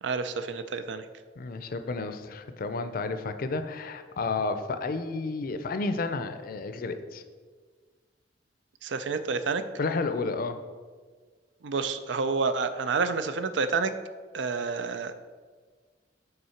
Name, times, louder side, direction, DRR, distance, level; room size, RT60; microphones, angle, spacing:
voice 1, 0.0-1.1 8.8-9.6 11.6-13.9 14.3-15.1, right 4 dB, 85° right, 11 dB, 0.4 m, -29 dB
voice 2, 1.4-7.2 9.8-10.6, left 3 dB, 55° left, 9 dB, 0.5 m, -31 dB
5.5 x 3.9 x 5.7 m, 1.5 s
head